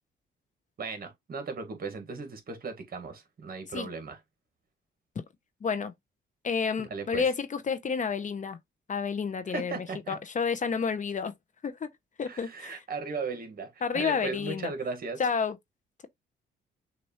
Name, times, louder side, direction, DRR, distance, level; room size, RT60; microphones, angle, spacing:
voice 1, 0.8-4.2 6.8-7.2 9.5-10.2 12.3-15.2, right 4 dB, 50° right, 1.6 m, -37 dB
voice 2, 5.6-5.9 6.4-8.6 8.9-11.3 11.6-11.9 12.2-12.8 13.8-14.7 15.2-15.6, left 6 dB, 40° left, 0.7 m, -30 dB
6.3 x 2.6 x 3.0 m
cardioid pair, 90°, 20 cm